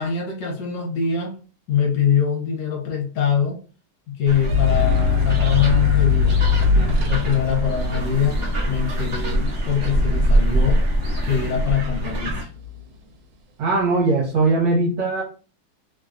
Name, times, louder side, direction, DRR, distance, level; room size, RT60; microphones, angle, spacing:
voice 1, 0.0-1.4 1.7-3.6 4.1-6.4 6.7-8.4 8.7-10.8 11.2-12.5, left 7 dB, 65° left, 1 dB, 1.3 m, -23 dB
sound 1, 4.3-12.4, equal, 50° right, 0.7 m, -23 dB
sound 2, 4.5-11.8 12.2-12.9, left 5 dB, 90° right, 1.4 m, -22 dB
voice 2, 13.6-15.2, right 3 dB, 70° right, -3 dB, 1.5 m, -20 dB
3.3 x 2.3 x 2.5 m, 0.36 s
omnidirectional pair, 2.2 m